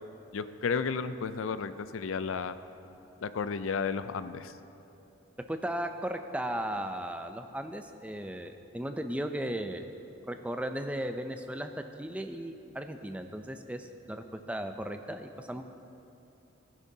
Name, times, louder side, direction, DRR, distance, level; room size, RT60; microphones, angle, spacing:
voice 1, 0.3-2.5 3.2-4.6, left 5 dB, 80° left, 12 dB, 0.4 m, -33 dB
voice 2, 5.5-9.9 10.2-15.6, right 1 dB, 5° right, 7 dB, 0.4 m, -36 dB
16.5 x 9.9 x 2.8 m, 2.8 s
head